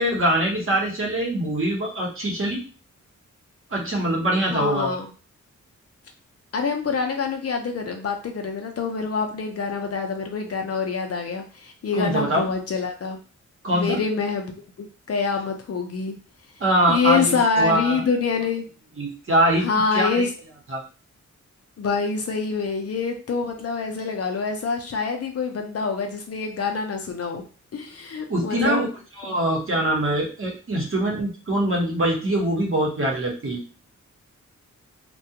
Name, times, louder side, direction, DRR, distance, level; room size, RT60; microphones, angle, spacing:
voice 1, 0.0-2.6 3.7-5.0 11.9-12.4 13.6-14.0 16.6-18.0 19.0-19.7 19.9-20.3 20.7-20.8 28.3-28.9 29.2-33.6, right 1 dB, 45° right, -2 dB, 0.8 m, -23 dB
voice 2, 4.5-5.1 6.5-13.2 13.7-14.6 15.1-16.1 16.9-18.7 19.6-20.3 21.8-27.4 27.7-28.9, left 5 dB, 55° left, 4 dB, 0.5 m, -26 dB
2.3 x 2.2 x 2.8 m, 0.36 s
wide cardioid pair, 145°, 30 cm